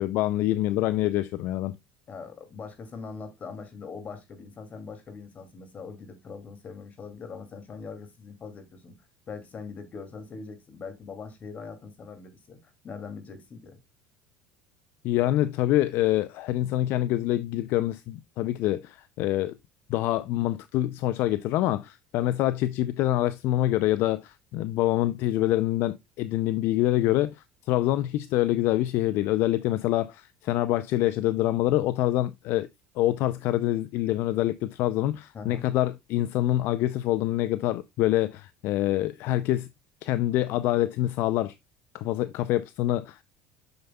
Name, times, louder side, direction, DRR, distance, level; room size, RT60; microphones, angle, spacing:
voice 1, 0.0-1.8 15.0-19.5 19.9-32.7 33.0-39.7 40.0-41.5 41.9-43.2, left 14 dB, 65° left, 0.5 m, -26 dB
voice 2, 2.1-9.0 9.3-13.8 35.3-35.6, left 5 dB, 40° left, 2.4 m, -42 dB
7.9 x 6.6 x 2.2 m
supercardioid pair, 90°, 4 cm